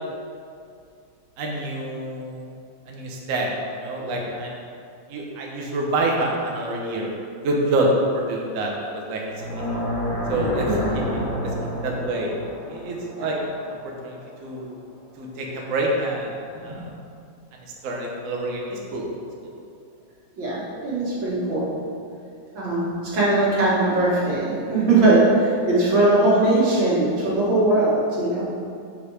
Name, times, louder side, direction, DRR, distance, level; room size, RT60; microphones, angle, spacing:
voice 1, 1.4-2.4 2.9-4.5 5.1-7.1 7.4-9.5 10.3-10.7 10.9-11.5 11.8-12.3 12.7-13.4 14.0-14.7 15.2-16.9 17.5-19.1 19.4-19.5, right 1 dB, 55° right, -1 dB, 1.0 m, -27 dB
sound 1, 9.3-14.4, left 1 dB, 65° left, 1.6 m, -29 dB
voice 2, 20.4-21.7 22.5-28.4, right 2 dB, 90° right, -8 dB, 2.3 m, -20 dB
5.1 x 4.3 x 4.8 m, 2.4 s
omnidirectional pair, 2.0 m